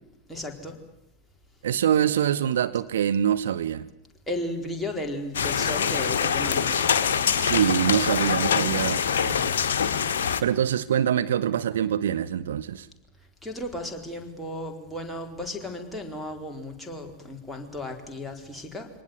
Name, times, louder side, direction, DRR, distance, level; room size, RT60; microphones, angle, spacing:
voice 1, 0.3-0.8 4.3-6.9 13.4-18.9, left 1 dB, ahead, 4.3 m, -34 dB
voice 2, 1.6-3.9 7.3-9.5 10.0-12.9, right 9 dB, 60° right, 0.9 m, -25 dB
sound 1, 5.3-10.4, left 7 dB, 60° left, 1.5 m, -24 dB
24.5 x 19.0 x 9.6 m
figure-of-eight pair, 90°, 0 cm